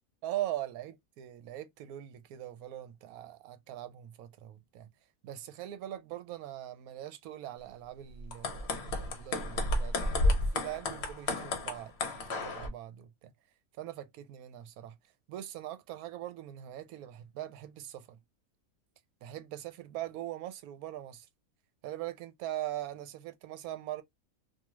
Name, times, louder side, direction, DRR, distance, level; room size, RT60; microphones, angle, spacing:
voice 1, 0.2-4.9 5.2-13.3 13.8-15.0 15.3-18.2 19.2-21.3 21.8-24.0, right 13 dB, 80° right, 1.0 m, -41 dB
sound 1, 8.2-12.7, left 2 dB, 55° left, 0.9 m, -31 dB
2.5 x 2.3 x 3.0 m
omnidirectional pair, 1.5 m